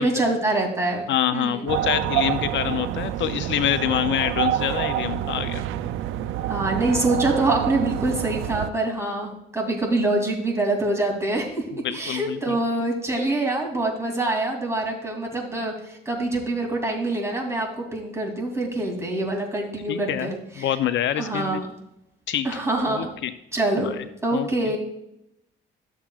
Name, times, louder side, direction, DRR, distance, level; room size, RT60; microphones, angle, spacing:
voice 1, 0.0-1.1 1.3-1.8 6.5-11.6 11.9-20.7 21.2-21.7 22.4-23.1 23.5-23.9 24.2-24.8, right 2 dB, 15° right, 0 dB, 2.7 m, -25 dB
voice 2, 1.1-5.6 11.8-12.6 19.9-21.6 22.3-22.5 22.9-23.3 23.8-23.9 24.3-24.5, left 10 dB, 70° left, 12 dB, 0.5 m, -26 dB
sound 1, 1.7-8.7, right 12 dB, 90° right, 0.4 m, -27 dB
12.5 x 7.3 x 2.4 m, 0.82 s
cardioid pair, 90°, 20 cm